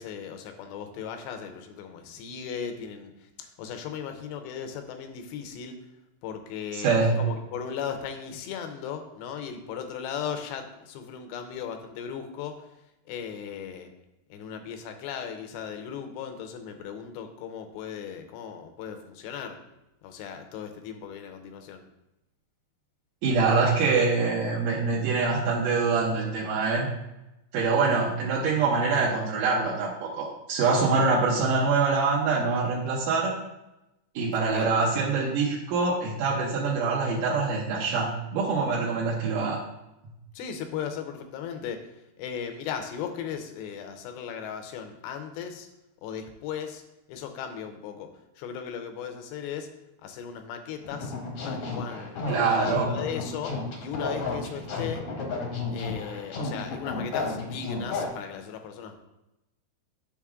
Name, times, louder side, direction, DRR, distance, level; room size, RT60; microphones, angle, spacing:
voice 1, 0.0-5.8 6.2-12.7 13.1-13.9 14.3-19.6 20.0-21.8 34.4-34.8 40.3-41.9 42.2-45.7 46.0-46.8 47.1-48.1 48.4-49.7 50.0-51.1 51.4-55.0 55.7-59.0, left 7 dB, 90° left, 6 dB, 3.0 m, -37 dB
voice 2, 6.7-7.2 23.2-26.9 27.5-33.3 34.2-39.6 52.3-52.9, right 4 dB, 75° right, -4 dB, 2.1 m, -25 dB
sound 1, 50.8-58.1, left 3 dB, 70° left, 1.4 m, -32 dB
7.2 x 6.5 x 3.6 m, 0.93 s
omnidirectional pair, 4.8 m